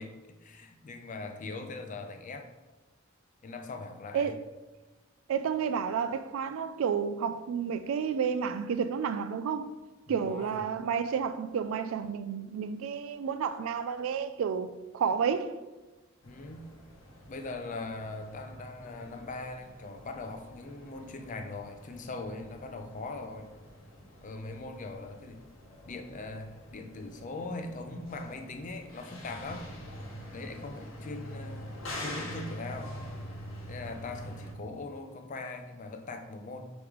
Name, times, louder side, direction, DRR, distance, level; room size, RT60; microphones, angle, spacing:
voice 1, 0.0-2.5 3.4-4.4 10.1-10.6 16.2-16.8 17.3-23.5 24.2-25.4 25.8-29.7 30.3-31.7 32.0-32.9 33.7-36.7, left 3 dB, 40° left, 0.4 m, -41 dB
voice 2, 5.3-9.7 10.1-15.5, right 7 dB, 90° right, 0.3 m, -31 dB
sound 1, 16.2-34.5, equal, 70° left, 0.9 m, -45 dB
4.8 x 3.0 x 3.5 m
head